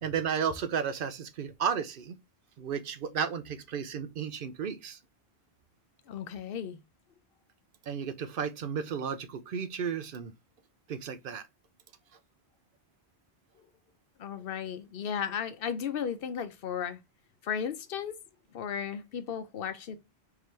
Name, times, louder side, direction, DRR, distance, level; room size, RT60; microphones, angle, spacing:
voice 1, 0.0-2.2 2.6-5.0 7.9-10.3 10.9-11.4, right 7 dB, 60° right, 0.7 m, -33 dB
voice 2, 6.1-6.8 14.2-17.0 17.4-18.2 18.5-20.0, left 8 dB, 65° left, 0.7 m, -35 dB
4.4 x 2.9 x 3.2 m
omnidirectional pair, 1.1 m